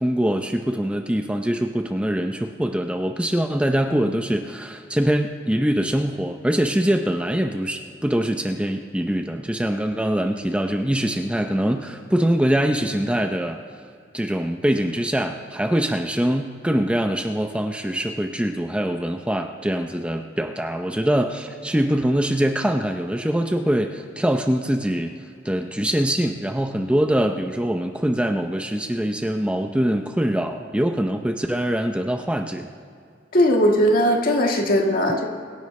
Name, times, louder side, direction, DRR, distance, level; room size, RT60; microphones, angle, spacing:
voice 1, 0.0-13.6 14.1-25.1 25.4-32.7, right 1 dB, 5° right, 5 dB, 0.6 m, -23 dB
voice 2, 33.3-35.3, equal, 50° left, 2 dB, 1.7 m, -18 dB
24.5 x 11.0 x 3.2 m, 2.3 s
head